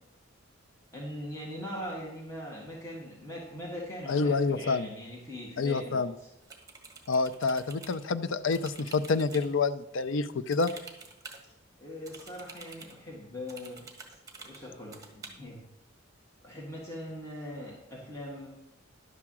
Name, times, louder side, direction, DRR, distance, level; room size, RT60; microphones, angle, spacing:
voice 1, 0.9-6.3 11.8-13.8 14.3-15.6 16.4-18.5, left 1 dB, 15° left, -4 dB, 1.8 m, -41 dB
voice 2, 4.1-4.9 5.6-6.1 7.1-10.7, left 4 dB, 70° left, 13 dB, 0.5 m, -28 dB
sound 1, 6.4-8.0 8.5-9.5 10.5-11.4 12.1-12.9 13.5-14.6 14.9-15.3, right 4 dB, 20° right, 1.6 m, -48 dB
11.0 x 4.8 x 7.4 m, 0.86 s
head